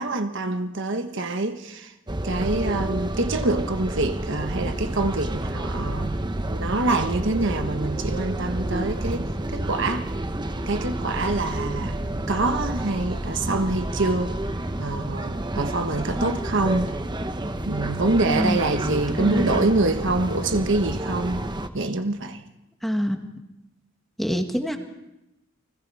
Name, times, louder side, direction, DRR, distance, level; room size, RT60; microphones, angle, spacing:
voice 1, 0.0-1.9 2.2-10.0 10.7-12.0 12.3-14.3 14.8-16.9 17.6-21.5 21.7-22.4, right 2 dB, 60° right, 1.3 m, -25 dB
sound 1, 2.1-21.7, right 1 dB, 20° right, 1.0 m, -29 dB
voice 2, 18.3-18.6 19.3-19.7 22.8-23.2 24.2-24.8, equal, ahead, 1.7 m, -25 dB
29.5 x 21.0 x 4.8 m
head